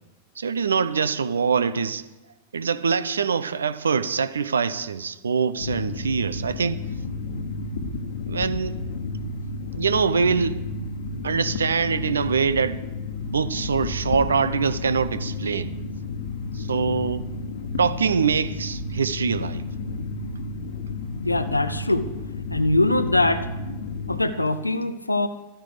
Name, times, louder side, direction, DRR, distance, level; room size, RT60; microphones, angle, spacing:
voice 1, 0.4-2.0 2.5-6.8 8.3-8.8 9.7-10.6 11.2-12.8 13.2-15.7 16.5-17.2 17.8-19.6, right 5 dB, 70° right, 0.8 m, -24 dB
sound 1, 5.6-24.3, left 3 dB, 60° left, 1.5 m, -32 dB
voice 2, 21.2-22.1 22.5-23.5 24.1-25.3, left 2 dB, 85° left, 0.7 m, -22 dB
14.0 x 13.5 x 5.1 m
figure-of-eight pair, 90°, 0 cm